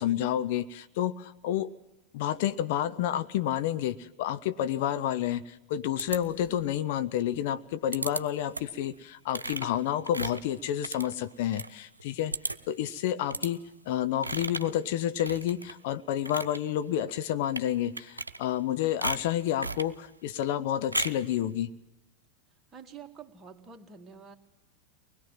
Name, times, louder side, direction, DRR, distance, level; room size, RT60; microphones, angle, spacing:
voice 1, 0.0-1.7 2.1-13.6 13.9-21.7, left 11 dB, 50° left, 11 dB, 0.8 m, -30 dB
sound 1, 6.0-6.7 7.9-8.2 8.5-8.8 9.3-11.7 12.0-12.1 12.3-12.8 13.3-13.5 14.2-14.8 15.2-15.7 16.1-16.6 17.4-17.7 18.0-18.7 19.0-19.9 20.9-21.3, right 2 dB, 80° right, 0.9 m, -35 dB
voice 2, 22.7-24.4, right 6 dB, 20° right, 3 dB, 2.2 m, -47 dB
24.0 x 21.0 x 7.4 m, 0.94 s
figure-of-eight pair, 90°, 0 cm